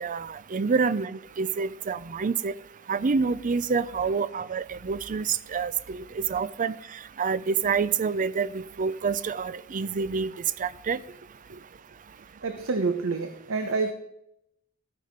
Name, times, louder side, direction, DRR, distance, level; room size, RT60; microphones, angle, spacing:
voice 1, 0.0-2.5 2.9-6.7 7.2-10.3 10.6-11.0, right 5 dB, 40° right, 0.5 m, -27 dB
voice 2, 12.4-13.9, right 4 dB, 65° right, 0.9 m, -28 dB
14.0 x 9.4 x 5.2 m
head